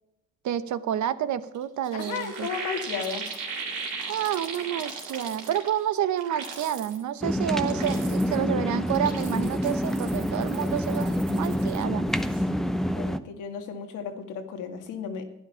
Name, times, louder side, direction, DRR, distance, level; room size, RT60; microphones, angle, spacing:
voice 1, 0.4-2.5 4.1-12.1, right 10 dB, 70° right, 14 dB, 0.9 m, -29 dB
sound 1, 1.5-1.6 1.8-5.9 6.2-7.0 7.5-8.4 8.8-11.8 12.1-12.4, right 5 dB, 90° right, 3.1 m, -38 dB
voice 2, 1.9-3.3 12.9-15.2, left 6 dB, 85° left, 5 dB, 2.0 m, -34 dB
sound 2, 7.2-13.2, equal, ahead, 0.7 m, -27 dB
11.5 x 10.5 x 5.6 m, 0.88 s
cardioid pair, 90°, 30 cm